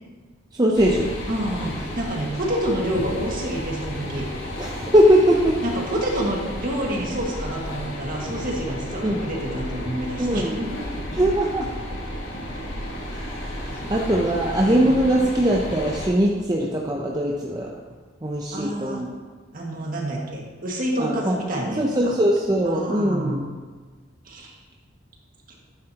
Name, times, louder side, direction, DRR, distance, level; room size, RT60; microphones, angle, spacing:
voice 1, 0.5-1.1 4.6-5.6 9.0-9.2 10.2-10.6 11.2-11.8 13.1-17.7 18.2-19.1 21.0-21.4 21.8-23.4, equal, 20° right, -2 dB, 0.7 m, -21 dB
sound 1, 0.8-16.1, left 1 dB, 70° left, 1.6 m, -33 dB
voice 2, 1.3-4.3 5.6-10.8 13.7-13.9 14.7-14.9 18.5-19.0 19.5-22.1 22.6-23.5 24.2-24.6 25.5-25.6, right 1 dB, 45° right, -2 dB, 1.9 m, -28 dB
11.0 x 9.3 x 2.9 m, 1.4 s
head